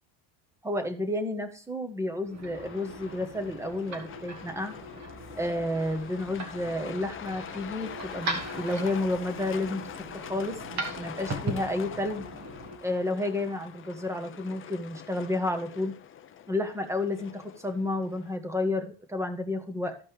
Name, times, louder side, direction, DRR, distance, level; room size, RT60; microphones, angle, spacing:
voice 1, 0.6-4.8 5.4-9.8 10.1-10.6 10.9-12.3 12.8-15.9 16.5-20.0, left 2 dB, 5° right, 7 dB, 1.2 m, -31 dB
sound 1, 2.2-12.8, right 2 dB, 35° right, 1.6 m, -39 dB
Truck, 2.5-18.4, left 9 dB, 25° left, 0.5 m, -44 dB
14.0 x 5.3 x 3.3 m, 0.39 s
cardioid pair, 135°, 49 cm